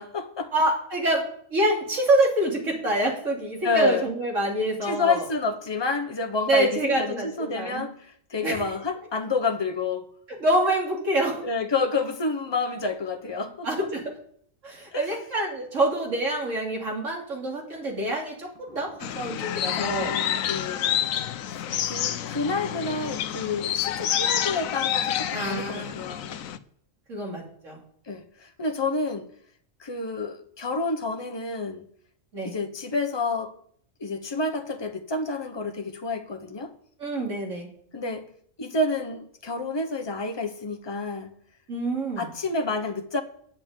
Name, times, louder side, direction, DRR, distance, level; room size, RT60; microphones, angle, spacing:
voice 1, 0.0-0.5 3.6-4.1 4.8-10.1 11.4-13.9 14.9-15.1 18.7-18.8 19.8-21.1 21.5-26.3 28.1-29.3 29.8-31.8 32.4-33.5 34.0-36.7 37.9-38.3 38.6-41.3 42.2-43.2, left 3 dB, 20° left, 0.9 m, -29 dB
voice 2, 0.5-5.2 6.5-7.9 8.4-8.6 10.3-11.5 13.6-14.2 14.6-20.1 21.8-21.9 25.3-26.0 27.1-27.8 32.3-32.6 37.0-37.7 41.7-42.3, right 1 dB, 65° right, 3.1 m, -26 dB
sound 1, 19.0-26.6, left 10 dB, 90° left, 1.1 m, -28 dB
8.9 x 7.2 x 8.8 m
omnidirectional pair, 1.4 m